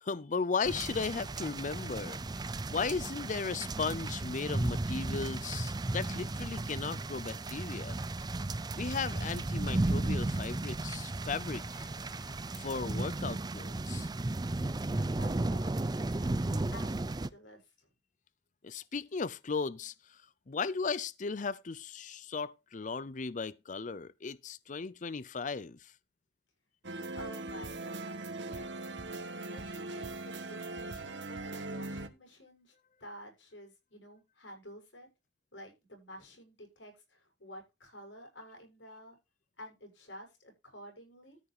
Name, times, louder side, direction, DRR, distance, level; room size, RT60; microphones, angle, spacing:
voice 1, 0.0-8.0 8.7-14.1 18.6-19.9 20.5-25.8, left 4 dB, 45° left, 0.5 m, -36 dB
sound 1, 0.7-17.3, right 2 dB, 20° right, 0.5 m, -34 dB
voice 2, 15.2-16.0 16.7-17.9 27.1-29.0 29.5-32.7 33.0-35.1 35.5-39.2 39.6-41.4, equal, 90° left, 6.7 m, -51 dB
sound 2, 26.8-32.1, right 2 dB, 75° right, 1.4 m, -40 dB
13.5 x 5.6 x 4.8 m
head